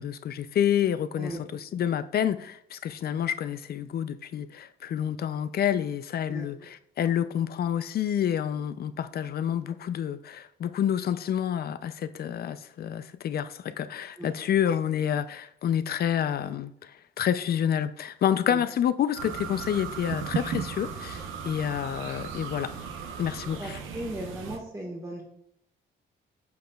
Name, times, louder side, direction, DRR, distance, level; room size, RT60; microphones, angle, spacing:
voice 1, 0.0-22.7 23.2-23.8, left 9 dB, 50° left, 0.4 m, -28 dB
sound 1, 19.2-24.6, right 6 dB, 90° right, 0.8 m, -36 dB
voice 2, 23.2-25.2, right 1 dB, 15° right, 1.5 m, -37 dB
8.4 x 5.8 x 2.3 m
cardioid pair, 90°, 20 cm